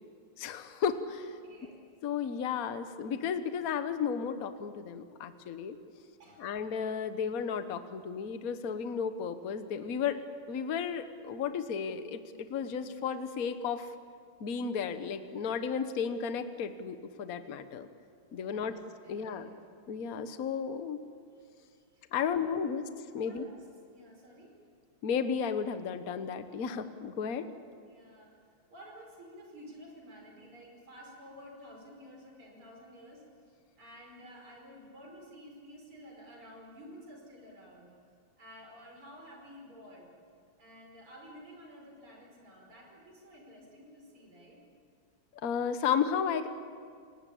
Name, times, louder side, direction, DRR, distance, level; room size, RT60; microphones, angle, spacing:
voice 1, 0.4-1.4 2.0-5.8 6.4-10.2 10.5-13.9 14.4-17.9 18.3-18.7 19.1-19.5 19.9-21.0 22.1-22.8 23.1-23.5 25.0-27.5 45.4-46.5, left 7 dB, 50° left, 9 dB, 1.4 m, -33 dB
voice 2, 1.4-1.8 6.2-6.5 18.3-19.5 21.6-22.7 23.2-23.6 23.9-24.5 27.8-33.2 33.8-37.9 38.4-40.1 40.6-44.6, equal, 85° right, 0 dB, 6.1 m, -52 dB
29.5 x 18.5 x 8.5 m, 2.2 s
omnidirectional pair, 2.3 m